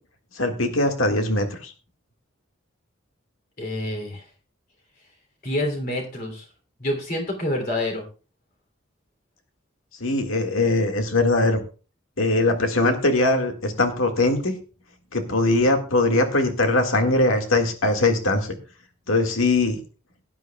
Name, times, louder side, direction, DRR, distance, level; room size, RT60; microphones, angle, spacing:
voice 1, 0.4-1.7 10.0-11.6 12.2-14.5 15.1-18.6 19.1-19.8, left 2 dB, 90° left, 5 dB, 1.9 m, -21 dB
voice 2, 3.6-4.2 5.4-6.4 6.8-8.0, left 1 dB, 45° left, 3 dB, 3.0 m, -27 dB
18.0 x 9.8 x 2.3 m, 0.35 s
head